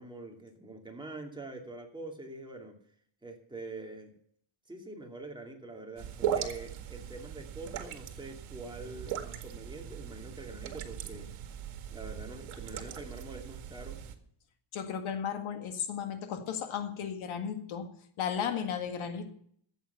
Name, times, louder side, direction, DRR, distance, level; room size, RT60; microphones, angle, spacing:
voice 1, 0.0-2.8 3.2-4.1 4.7-11.3 11.9-14.0, right 2 dB, 10° right, 1 dB, 2.7 m, -45 dB
sound 1, 6.0-14.1, right 9 dB, 75° right, 2.0 m, -39 dB
voice 2, 14.7-17.9 18.2-19.3, left 7 dB, 70° left, 7 dB, 2.0 m, -35 dB
14.0 x 8.3 x 6.9 m, 0.63 s
cardioid pair, 125°, 50 cm